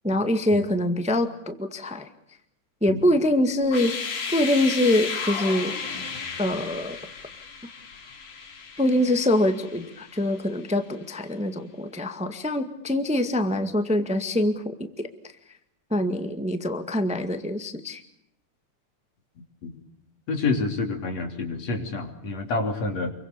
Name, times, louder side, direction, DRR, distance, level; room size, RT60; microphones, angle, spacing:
voice 1, 0.0-2.1 2.8-4.0 4.3-5.7 6.4-7.0 8.8-15.1 15.9-18.0, left 1 dB, 5° right, 8 dB, 1.0 m, -24 dB
sound 1, 3.6-10.5, left 5 dB, 70° left, 4.4 m, -34 dB
voice 2, 20.3-23.1, left 3 dB, 55° left, 4 dB, 4.3 m, -28 dB
28.5 x 23.5 x 6.9 m, 0.76 s
omnidirectional pair, 3.7 m